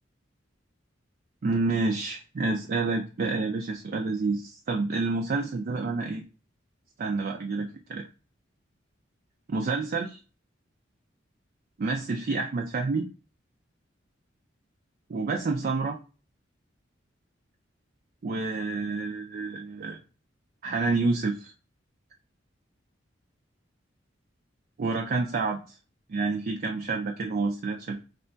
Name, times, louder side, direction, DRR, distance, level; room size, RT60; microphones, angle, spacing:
voice 1, 1.4-6.2 7.0-8.1 9.5-10.2 11.8-13.1 15.1-16.0 18.2-20.0 20.6-21.5 24.8-25.6 26.1-28.0, right 3 dB, 50° right, 2 dB, 0.4 m, -28 dB
3.2 x 2.2 x 3.8 m, 0.35 s
head